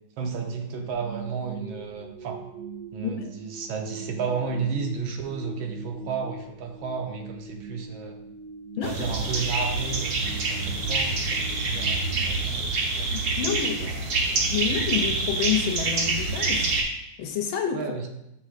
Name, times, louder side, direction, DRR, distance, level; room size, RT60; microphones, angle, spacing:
voice 1, 0.2-2.4 2.9-8.2 8.8-13.5 13.8-14.1 17.7-18.1, right 5 dB, 75° right, 3 dB, 1.5 m, -33 dB
sound 1, 0.9-13.1, right 4 dB, 35° right, 1.3 m, -42 dB
sound 2, 8.8-16.8, right 3 dB, 55° right, 1.2 m, -26 dB
voice 2, 13.1-13.9 14.5-16.7 17.2-17.8, left 8 dB, 80° left, 5 dB, 1.4 m, -28 dB
8.2 x 5.5 x 2.4 m, 0.85 s
omnidirectional pair, 2.3 m